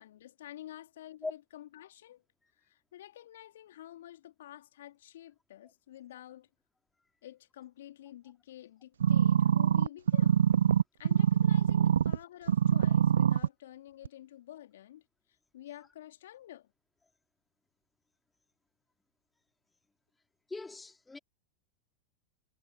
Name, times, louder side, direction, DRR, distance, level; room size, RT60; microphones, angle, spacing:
voice 1, 0.0-2.2 2.6-6.5 7.2-10.5 11.0-15.0 15.5-16.7, left 13 dB, 65° left, 2.6 m, -50 dB
sound 1, 9.0-12.2 12.5-13.5 14.1-14.2, right 9 dB, 75° right, 0.5 m, -24 dB
voice 2, 20.5-21.2, left 3 dB, 10° left, 2.3 m, -40 dB
figure-of-eight pair, 90°, 0 cm